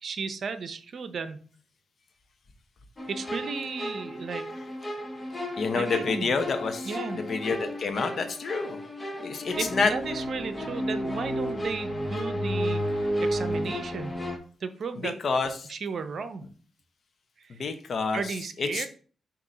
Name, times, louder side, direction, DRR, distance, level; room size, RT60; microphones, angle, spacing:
voice 1, 0.0-1.5 3.1-4.5 5.7-6.3 6.8-7.2 9.6-14.2 14.6-15.2 15.7-16.5 17.4-17.6 18.1-18.9, right 5 dB, 60° right, 10 dB, 0.7 m, -34 dB
sound 1, 3.0-14.4, equal, 25° left, 1.2 m, -32 dB
voice 2, 5.6-8.8 9.2-9.9 15.0-15.7 17.6-18.9, left 4 dB, 55° left, 7 dB, 1.0 m, -28 dB
6.7 x 3.0 x 5.0 m, 0.43 s
cardioid pair, 65°, 0 cm